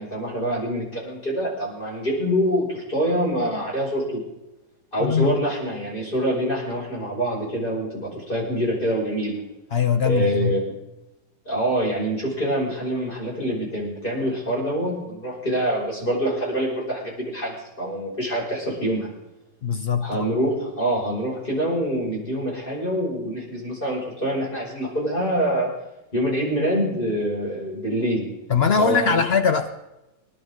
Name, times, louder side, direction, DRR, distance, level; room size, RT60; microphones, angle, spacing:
voice 1, 0.0-4.2 4.9-9.4 10.0-10.6 11.5-19.1 20.0-25.7 26.1-28.3 28.7-29.2, equal, 25° left, -4 dB, 5.6 m, -25 dB
voice 2, 5.0-5.4 9.7-10.6 19.6-20.3 28.5-29.8, left 6 dB, 85° left, 8 dB, 0.5 m, -21 dB
26.0 x 11.5 x 3.6 m, 0.95 s
omnidirectional pair, 2.0 m